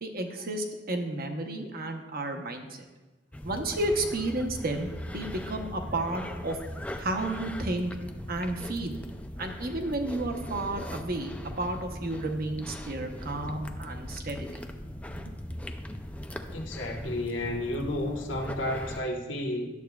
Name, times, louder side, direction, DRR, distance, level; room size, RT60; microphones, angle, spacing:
voice 1, 0.0-2.8 3.4-6.6 7.0-7.9 8.3-9.0 9.4-14.6 15.3-15.4, right 2 dB, 55° right, 4 dB, 0.8 m, -32 dB
sound 1, 3.3-19.0, left 1 dB, 10° left, 0.4 m, -39 dB
voice 2, 16.5-19.7, left 1 dB, 90° left, 2 dB, 1.1 m, -32 dB
11.0 x 7.7 x 2.3 m, 1.2 s
head